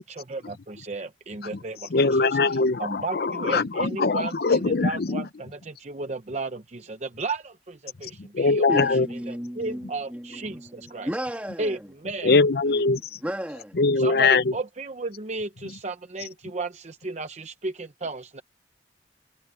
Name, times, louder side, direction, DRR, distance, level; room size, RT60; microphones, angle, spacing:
voice 1, 0.0-1.9 2.8-8.9 9.3-11.1 11.6-12.4 14.0-18.4, right 3 dB, 40° right, 0.8 m, -34 dB
voice 2, 1.9-5.3 8.0-9.1 12.2-13.0 13.8-14.5, left 3 dB, 60° left, 0.6 m, -22 dB
voice 3, 8.7-11.9 12.7-12.9 13.2-13.8, equal, 10° right, 2.6 m, -34 dB
head